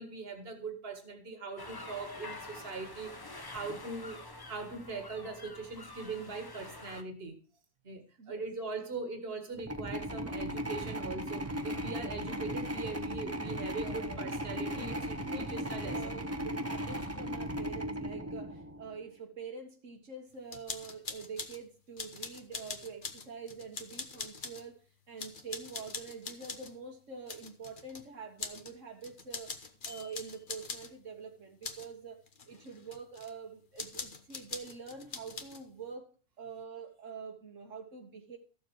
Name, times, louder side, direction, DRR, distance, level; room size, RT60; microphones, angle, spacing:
voice 1, 0.0-4.2 4.5-7.4 7.8-16.0, right 3 dB, 50° right, 1.8 m, -41 dB
sound 1, 1.6-7.0, left 2 dB, 20° left, 0.9 m, -47 dB
sound 2, 9.6-18.9, equal, 15° right, 0.9 m, -37 dB
voice 2, 13.4-14.3 14.7-24.8 25.1-29.5 29.8-36.1 36.4-38.4, right 5 dB, 75° right, 1.7 m, -46 dB
sound 3, 20.5-21.6 22.0-24.7 25.2-26.7 27.3-28.0 28.4-28.7 29.0-30.9 31.6-31.9 32.3-33.3 33.8-35.6, left 4 dB, 45° left, 1.1 m, -43 dB
13.5 x 7.2 x 4.6 m
omnidirectional pair, 1.3 m